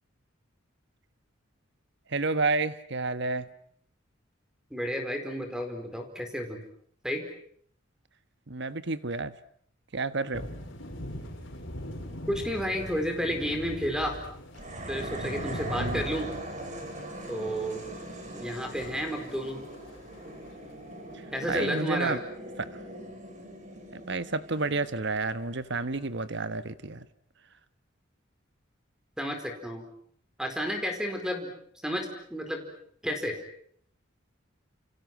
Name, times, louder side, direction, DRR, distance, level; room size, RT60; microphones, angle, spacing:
voice 1, 2.1-3.5 8.5-9.3 9.9-10.5 15.8-16.1 21.1-21.2 21.5-22.2 22.6-22.7 23.9-27.1, right 3 dB, 60° right, 1.3 m, -30 dB
voice 2, 4.7-6.6 7.0-7.2 12.3-14.2 14.9-16.3 17.3-17.8 18.4-19.7 21.3-22.2 29.2-29.9 30.4-31.5 31.8-32.7 33.0-33.3, equal, 5° right, 4.7 m, -31 dB
sound 1, 10.3-20.4, equal, 65° left, 6.9 m, -41 dB
sound 2, 14.5-25.9, right 1 dB, 40° right, 6.1 m, -41 dB
29.5 x 29.5 x 6.2 m
head